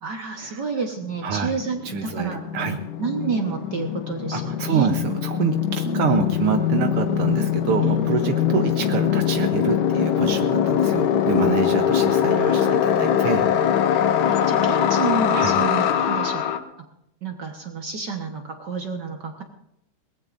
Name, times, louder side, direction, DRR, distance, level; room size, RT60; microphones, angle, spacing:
voice 1, 0.0-2.7 3.0-4.9 5.8-6.1 7.8-8.0 12.6-13.2 14.2-16.4 17.2-19.4, right 5 dB, 60° right, 3 dB, 1.1 m, -30 dB
sound 1, 1.1-1.2 1.3-16.6, left 9 dB, 80° left, 2.5 m, -22 dB
voice 2, 1.2-1.5 1.8-2.8 4.3-13.4 15.3-15.5, right 7 dB, 85° right, 6 dB, 1.2 m, -26 dB
22.0 x 18.5 x 2.6 m, 0.80 s
omnidirectional pair, 3.7 m